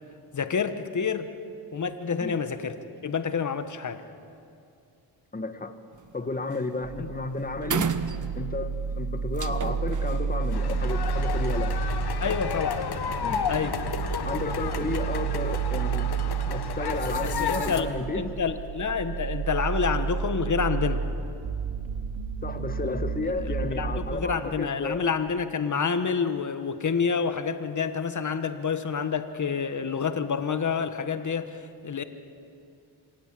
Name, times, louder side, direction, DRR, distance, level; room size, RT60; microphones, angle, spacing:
voice 1, 0.3-1.3 1.7-4.0 7.0-7.1 12.2-12.8 13.5-13.8 17.2-17.9 18.1-21.0 23.4-32.0, left 6 dB, 40° left, 10 dB, 1.4 m, -28 dB
voice 2, 5.3-5.8 6.1-7.9 8.4-11.8 12.2-12.4 13.2-13.4 14.2-16.1 16.5-18.2 22.4-25.0, left 3 dB, 20° left, 9 dB, 1.4 m, -32 dB
sound 1, 5.9-6.2 6.5-6.8 7.1-7.2 7.6-8.7 9.3-11.4, right 6 dB, 40° right, 1.0 m, -32 dB
sound 2, 6.8-24.2, right 6 dB, 75° right, 2.7 m, -31 dB
sound 3, 10.5-17.8, left 7 dB, 55° left, 1.5 m, -32 dB
26.0 x 18.0 x 7.7 m, 2.5 s
cardioid pair, 85°, 47 cm